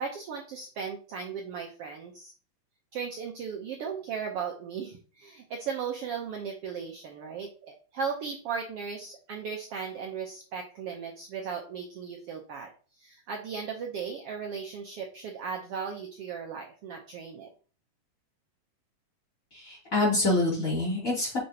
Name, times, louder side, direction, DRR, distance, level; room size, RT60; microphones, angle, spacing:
voice 1, 0.0-2.3 2.9-12.7 13.0-17.5, right 6 dB, 85° right, 1 dB, 1.3 m, -36 dB
voice 2, 19.5-21.4, left 2 dB, 25° left, -5 dB, 3.1 m, -26 dB
8.2 x 5.7 x 2.8 m, 0.39 s
omnidirectional pair, 3.9 m